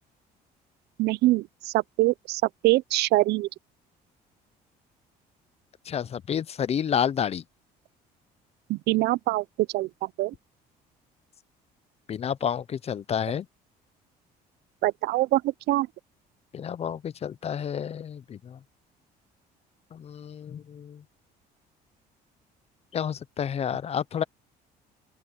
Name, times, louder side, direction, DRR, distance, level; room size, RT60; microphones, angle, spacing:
voice 1, 1.0-3.5 8.7-9.4 9.7-10.3 14.8-15.9, right 18 dB, 75° right, 0.5 m, -24 dB
voice 2, 5.9-7.4 12.1-13.5 16.5-18.6 19.9-21.0 22.9-24.2, left 8 dB, 40° left, 0.6 m, -30 dB
open air
cardioid pair, 110°, 17 cm